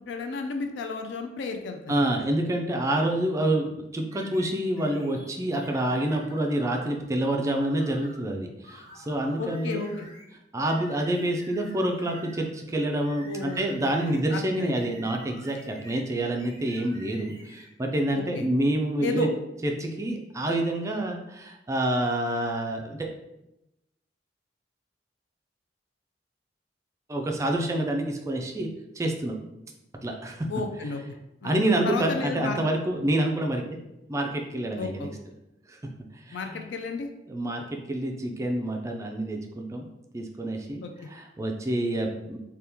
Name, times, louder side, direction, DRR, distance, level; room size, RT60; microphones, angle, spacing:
voice 1, 0.1-2.2 9.4-10.1 13.2-14.8 18.0-18.5 19.0-19.3 30.5-31.2 31.4-31.6 31.8-32.6 34.8-35.1 36.3-37.1 40.8-40.9, left 4 dB, 70° left, 5 dB, 0.3 m, -33 dB
voice 2, 1.9-9.9 10.5-19.3 19.6-23.1 27.1-28.7 29.0-29.4 30.0-30.5 31.4-33.6 34.1-35.1 35.7-35.8 36.3-36.7 37.3-39.9 40.1-40.8 41.1-42.4, right 1 dB, 15° right, 2 dB, 0.3 m, -27 dB
sound 1, 4.1-7.0 7.4-8.3 8.6-10.3 10.7-12.6 12.9-16.1 16.4-17.7 18.1-18.2, equal, 20° left, 0.7 m, -50 dB
2.8 x 2.2 x 3.4 m, 0.90 s
head